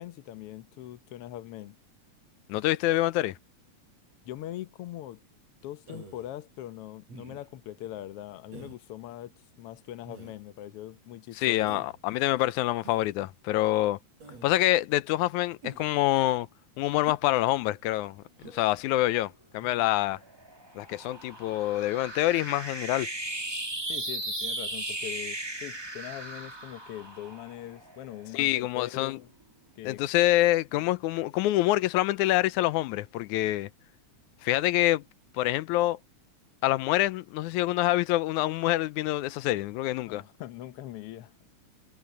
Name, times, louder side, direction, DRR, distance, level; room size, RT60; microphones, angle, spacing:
voice 1, 0.0-1.8 4.2-5.2 5.6-9.3 9.6-11.7 23.9-29.3 29.8-30.0 40.1-41.3, left 13 dB, 65° left, 1.6 m, -41 dB
voice 2, 2.5-3.4 11.4-14.0 14.4-16.5 16.8-18.2 18.5-20.2 20.8-23.1 28.3-29.2 29.8-33.7 34.4-35.0 35.3-36.0 36.6-40.2, left 16 dB, 90° left, 2.1 m, -26 dB
Human voice, 5.9-6.4 7.1-7.6 8.5-8.8 10.1-10.4 11.7-12.0 12.8-13.1 14.2-14.6 15.6-16.0 17.0-17.3 18.4-18.7 19.6-20.0, right 3 dB, 60° right, 7.0 m, -47 dB
sound 1, 19.9-28.6, right 1 dB, 10° right, 1.4 m, -37 dB
omnidirectional pair, 3.4 m